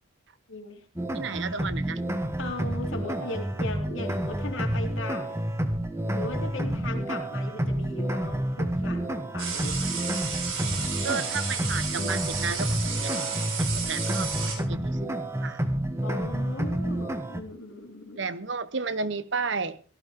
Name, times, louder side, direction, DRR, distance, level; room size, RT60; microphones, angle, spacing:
voice 1, 0.5-0.9 1.4-1.5 2.4-5.4 6.1-10.0 16.0-18.3, left 2 dB, 65° left, 3.6 m, -38 dB
sound 1, 1.0-17.4, right 1 dB, 15° right, 1.6 m, -29 dB
voice 2, 1.1-2.0 11.0-15.1 15.4-15.6 18.1-19.8, right 4 dB, 55° right, 0.9 m, -33 dB
sound 2, 9.4-14.6, right 5 dB, 75° right, 6.7 m, -32 dB
17.5 x 15.0 x 3.7 m
head